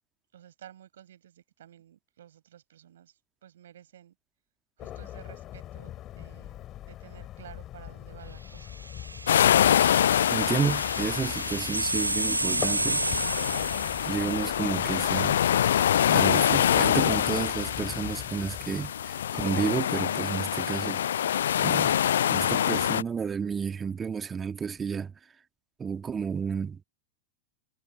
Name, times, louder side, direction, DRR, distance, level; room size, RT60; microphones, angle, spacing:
voice 1, 0.3-3.1 3.4-4.1 4.8-8.7, right 11 dB, 60° right, 6.5 m, -52 dB
sound 1, 4.8-18.9, left 13 dB, 30° left, 5.8 m, -42 dB
sound 2, 8.6-14.5, right 2 dB, 85° right, 1.0 m, -32 dB
sound 3, 9.3-23.0, left 10 dB, 65° left, 0.3 m, -25 dB
voice 2, 10.3-13.1 14.0-15.4 16.1-21.0 21.6-22.0 22.3-25.1 25.8-26.8, right 6 dB, 20° right, 1.8 m, -31 dB
figure-of-eight pair, 90°, 0 cm